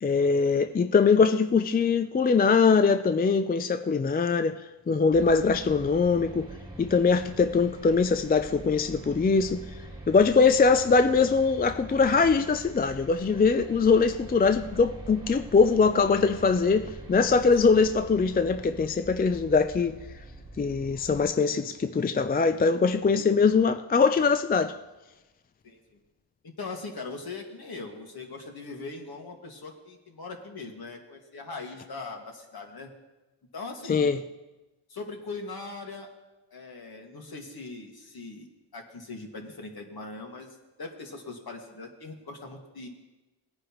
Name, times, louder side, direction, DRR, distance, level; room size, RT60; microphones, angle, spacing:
voice 1, 0.0-6.5 6.8-9.6 10.1-19.9 20.6-24.7 33.9-34.2, left 5 dB, 20° left, 9 dB, 0.3 m, -22 dB
sound 1, 5.1-21.2, right 2 dB, 10° right, 1.8 m, -44 dB
voice 2, 25.6-26.0 26.4-32.9 33.5-34.1 34.9-36.1 36.5-40.5 40.8-42.9, left 3 dB, 50° left, 2 dB, 2.0 m, -40 dB
18.5 x 9.6 x 3.1 m, 1.1 s
cardioid pair, 90°, 47 cm